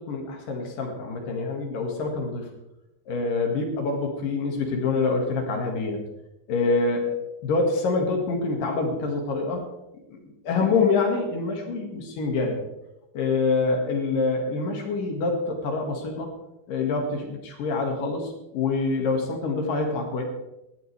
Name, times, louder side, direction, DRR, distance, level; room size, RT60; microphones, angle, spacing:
voice 1, 0.0-2.5 3.1-6.0 6.5-7.2 7.4-9.6 10.1-12.6 13.1-16.3 16.7-20.2, left 3 dB, 65° left, 2 dB, 3.4 m, -26 dB
18.0 x 12.5 x 3.4 m, 0.93 s
omnidirectional pair, 4.5 m